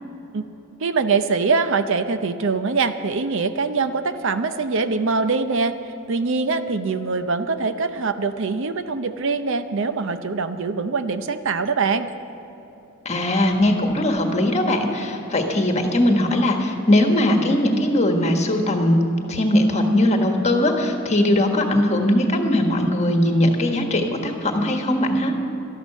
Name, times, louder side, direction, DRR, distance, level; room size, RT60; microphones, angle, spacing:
voice 1, 0.8-5.7 6.1-12.1, right 4 dB, 60° right, 10 dB, 0.7 m, -23 dB
voice 2, 13.0-19.0 19.3-25.3, left 1 dB, 30° left, 3 dB, 1.5 m, -20 dB
13.0 x 11.5 x 7.4 m, 3.0 s
head